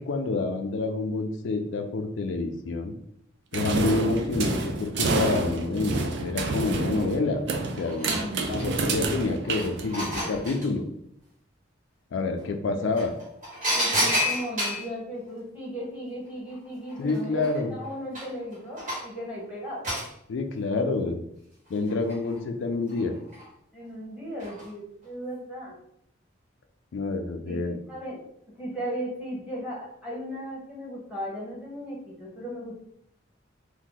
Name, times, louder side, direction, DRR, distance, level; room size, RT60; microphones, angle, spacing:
voice 1, 0.0-2.9 3.5-7.4 7.8-8.2 8.5-10.8 12.1-13.1 17.0-17.7 20.3-21.2 21.7-23.1 26.9-27.8, left 3 dB, 75° left, 5 dB, 0.4 m, -28 dB
sound 1, 3.5-10.3, right 3 dB, 60° right, 0.4 m, -29 dB
sound 2, 7.3-7.4 7.7-8.9 9.4-10.7 12.4-12.5 13.0-14.9 16.5-16.6 16.9-19.2 19.8-20.1 21.7-22.4 22.9-23.4 24.4-24.7 25.0-25.1, equal, 45° right, 1.4 m, -30 dB
voice 2, 8.0-8.7 12.8-12.9 13.7-17.4 17.7-19.9 23.7-25.8 27.5-27.6 27.9-28.2 28.6-32.8, equal, 5° right, -5 dB, 1.0 m, -36 dB
2.7 x 2.2 x 3.8 m, 0.71 s
head